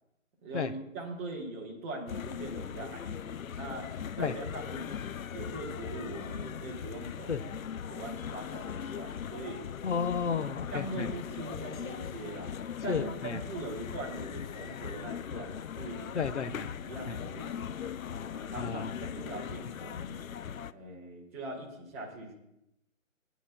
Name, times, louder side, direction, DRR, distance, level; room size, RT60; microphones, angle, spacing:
voice 1, 0.4-3.9 4.2-4.9 5.3-7.4 7.9-9.6 10.7-12.5 12.8-16.2 16.9-17.7 18.3-20.2 20.7-22.3, right 2 dB, 10° right, -4 dB, 1.1 m, -41 dB
sound 1, 2.1-20.7, left 8 dB, 80° left, 0.6 m, -39 dB
voice 2, 9.8-11.1 12.9-13.4 16.1-16.7 17.1-17.2 18.6-19.0, left 6 dB, 60° left, 10 dB, 0.9 m, -32 dB
19.5 x 9.5 x 2.2 m, 0.84 s
figure-of-eight pair, 160°, 40 cm